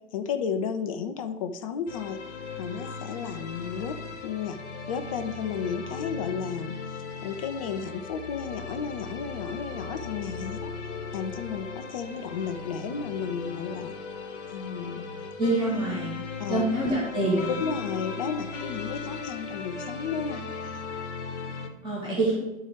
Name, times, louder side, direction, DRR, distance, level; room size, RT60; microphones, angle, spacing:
voice 1, 0.1-2.2 2.6-4.0 4.2-4.6 4.9-6.8 7.2-10.7 11.1-13.9 14.5-15.1 16.4-16.6 17.6-20.4, left 6 dB, 25° left, 7 dB, 0.4 m, -33 dB
sound 1, 1.9-21.7, left 4 dB, 55° left, 1.0 m, -37 dB
voice 2, 15.4-16.1 16.5-17.5 21.8-22.3, right 2 dB, 10° right, -7 dB, 1.8 m, -25 dB
11.5 x 4.4 x 3.4 m, 1.0 s
figure-of-eight pair, 100°, 41 cm